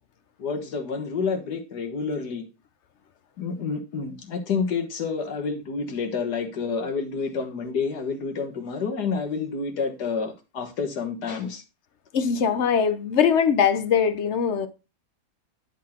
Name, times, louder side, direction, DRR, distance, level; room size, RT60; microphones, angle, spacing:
voice 1, 0.4-2.4 3.4-11.6, left 5 dB, 90° left, 1.9 m, -29 dB
voice 2, 12.1-14.7, left 7 dB, 55° left, 0.9 m, -21 dB
10.5 x 4.0 x 4.3 m
omnidirectional pair, 1.7 m